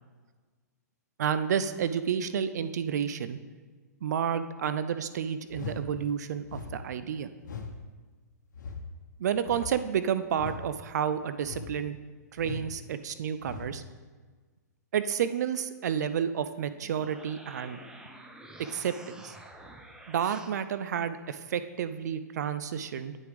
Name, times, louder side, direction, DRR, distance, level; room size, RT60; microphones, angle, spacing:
voice 1, 1.2-3.4 4.0-7.3 9.2-12.0 12.3-13.8 14.9-17.8 18.7-19.4 20.1-23.2, right 8 dB, 70° right, 12 dB, 0.4 m, -30 dB
sound 1, 5.5-5.8 6.5-6.8 7.4-7.7 8.5-8.8 9.4-9.8 10.4-10.6 11.4-11.7 12.4-12.7 13.4-13.7, left 6 dB, 85° left, 0.9 m, -40 dB
sound 2, 16.7-20.6, right 1 dB, 5° right, 0.5 m, -49 dB
9.4 x 4.8 x 3.4 m, 1.4 s
hypercardioid pair, 130°, 10 cm